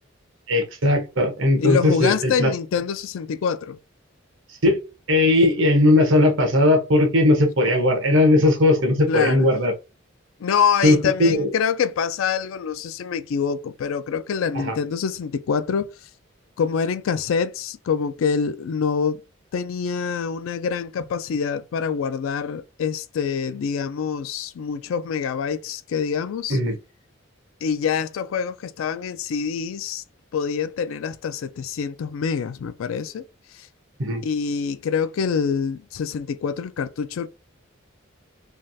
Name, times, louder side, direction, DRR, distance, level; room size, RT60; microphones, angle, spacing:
voice 1, 0.5-2.5 4.6-4.8 5.1-9.7 10.8-11.5 14.5-14.8 26.5-26.8 34.0-34.2, left 1 dB, 70° right, 1.0 m, -18 dB
voice 2, 1.6-3.8 9.1-9.5 10.4-15.9 16.6-19.2 19.5-26.6 27.6-30.0 30.3-33.2 33.5-33.7 34.2-37.3, left 6 dB, 80° left, 0.3 m, -25 dB
3.3 x 2.4 x 2.7 m
head